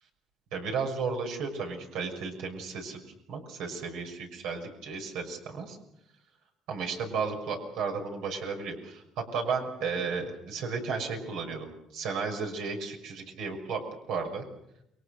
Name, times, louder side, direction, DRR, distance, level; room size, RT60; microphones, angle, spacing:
voice 1, 0.5-3.0 3.3-5.8 6.7-9.0 9.3-13.8 14.1-14.4, right 5 dB, 85° right, 2 dB, 6.2 m, -33 dB
29.5 x 22.5 x 6.7 m, 0.78 s
cardioid pair, 105°, 0 cm